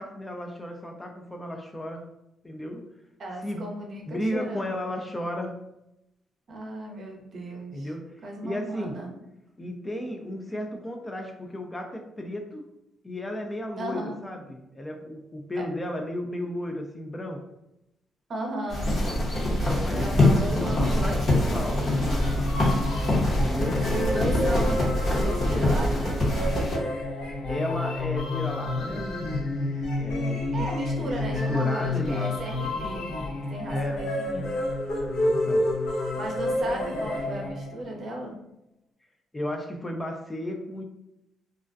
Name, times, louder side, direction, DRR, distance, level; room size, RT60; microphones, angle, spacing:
voice 1, 0.0-2.1 2.4-2.8 3.4-3.7 4.1-5.6 7.7-8.0 8.4-9.0 9.6-12.7 13.0-17.4 19.4-22.4 23.4-23.9 27.5-29.1 30.0-30.7 31.0-32.4 33.7-34.1 35.3-35.7 39.3-40.8, left 1 dB, 15° left, 3 dB, 0.4 m, -34 dB
voice 2, 3.2-4.8 6.5-7.9 8.2-9.1 13.8-14.2 15.6-15.7 18.3-18.9 20.0-21.5 23.9-26.3 30.5-33.2 33.5-34.5 36.2-38.4, right 1 dB, 55° right, 1 dB, 0.6 m, -35 dB
sound 1, 18.7-26.8, left 1 dB, 50° left, 0.9 m, -24 dB
sound 2, 21.9-37.9, left 2 dB, 90° left, 0.6 m, -29 dB
2.3 x 2.1 x 2.4 m, 0.86 s
cardioid pair, 90°, 0 cm